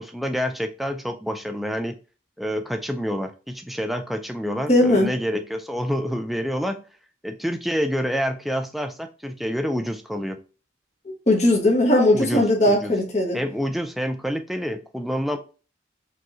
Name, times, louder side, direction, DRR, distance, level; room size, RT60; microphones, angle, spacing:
voice 1, 0.0-1.9 2.4-6.8 7.2-10.4 12.1-12.9 13.3-15.4, equal, ahead, 0.4 m, -27 dB
voice 2, 4.7-5.1 11.0-13.4, left 1 dB, 35° left, 1.3 m, -19 dB
4.6 x 3.0 x 2.6 m
head